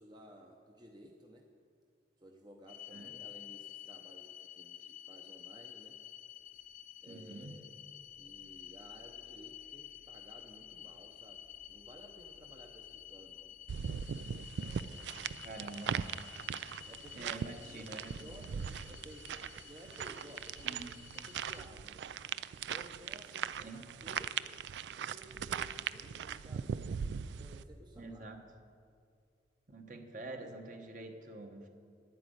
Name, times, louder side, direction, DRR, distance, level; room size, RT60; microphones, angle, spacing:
voice 1, 0.0-1.5 2.2-6.0 7.0-7.7 8.1-13.6 14.6-15.3 16.8-22.1 22.5-24.3 25.0-28.3, right 1 dB, 25° right, 1 dB, 0.7 m, -56 dB
sound 1, 2.7-21.7, left 11 dB, 50° left, 0.4 m, -51 dB
voice 2, 7.1-7.6 15.4-16.0 17.1-18.3 20.6-20.9 23.6-23.8 27.9-28.4 29.7-31.7, right 2 dB, 45° right, 4 dB, 1.2 m, -47 dB
sound 2, 13.7-27.6, right 7 dB, 80° right, 0.3 m, -40 dB
10.0 x 9.2 x 8.0 m, 2.3 s
head